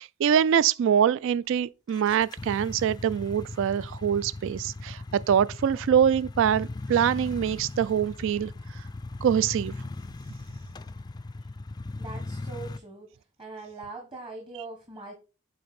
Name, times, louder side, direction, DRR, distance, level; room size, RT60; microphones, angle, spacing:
voice 1, 0.0-8.8 9.2-9.7, right 8 dB, 65° right, 0.3 m, -24 dB
sound 1, 1.9-12.8, left 2 dB, 20° left, 0.3 m, -38 dB
voice 2, 12.0-13.1 13.4-15.1, right 3 dB, 25° right, 1.4 m, -41 dB
8.4 x 3.9 x 4.2 m
head